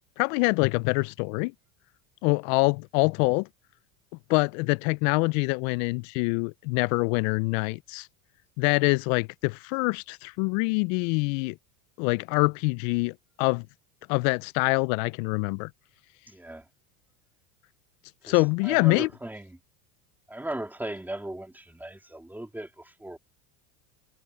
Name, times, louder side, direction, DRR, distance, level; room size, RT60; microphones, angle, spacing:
voice 1, 0.2-1.5 2.2-3.5 4.3-8.1 8.6-11.6 12.0-13.7 14.1-15.7 18.2-19.1, left 29 dB, 70° left, 0.5 m, -25 dB
voice 2, 16.3-16.7 18.2-19.6 20.3-23.2, right 1 dB, 5° right, 3.4 m, -38 dB
supercardioid pair, 120°, 43 cm